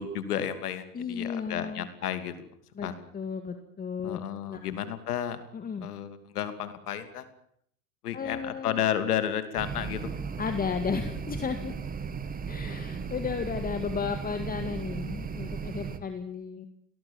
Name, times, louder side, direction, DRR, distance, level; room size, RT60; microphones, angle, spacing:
voice 1, 0.0-2.5 2.8-2.9 4.0-5.4 5.8-7.2 8.0-10.1, left 9 dB, 80° left, 11 dB, 2.8 m, -32 dB
voice 2, 0.9-1.9 2.8-2.9 3.1-4.2 4.5-4.8 5.5-5.9 8.1-8.8 10.4-11.7 12.5-16.7, left 6 dB, 20° left, 8 dB, 2.0 m, -34 dB
sound 1, 9.6-16.0, right 5 dB, 20° right, 2.0 m, -36 dB
27.5 x 18.5 x 7.2 m, 0.68 s
hypercardioid pair, 105°, 45 cm